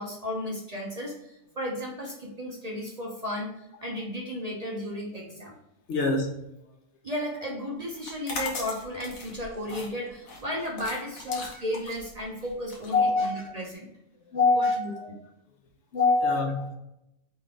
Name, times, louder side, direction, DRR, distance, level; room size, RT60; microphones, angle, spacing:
voice 1, 0.0-3.5 3.8-5.5 7.0-13.9 14.5-14.9, left 1 dB, 35° right, -2 dB, 0.7 m, -34 dB
voice 2, 5.9-6.4 11.3-11.4 12.9-13.3 14.3-15.1 15.9-16.7, left 3 dB, 65° left, 2 dB, 0.9 m, -24 dB
sound 1, 8.0-13.7, left 3 dB, 85° left, 1.4 m, -39 dB
4.0 x 3.2 x 3.6 m, 0.83 s
omnidirectional pair, 1.4 m